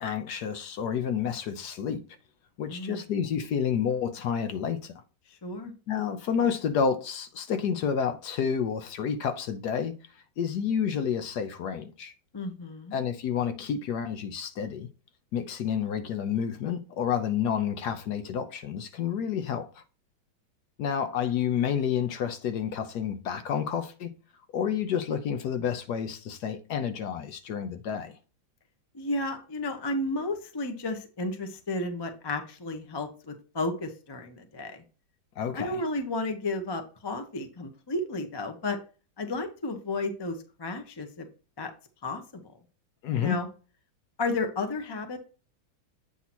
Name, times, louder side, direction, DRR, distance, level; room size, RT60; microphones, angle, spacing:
voice 1, 0.0-2.0 2.6-4.9 5.9-9.9 10.4-12.1 12.9-14.9 15.3-19.8 20.8-24.1 24.5-28.2 35.4-35.8 43.0-43.4, left 7 dB, 65° left, 1.1 m, -29 dB
voice 2, 2.7-3.0 5.4-5.7 12.3-13.0 28.9-34.8 35.5-38.8 39.2-41.3 41.6-41.7 42.0-42.4 43.2-43.5 44.2-45.2, left 2 dB, 30° left, 0.4 m, -32 dB
8.3 x 2.8 x 6.0 m
omnidirectional pair, 2.1 m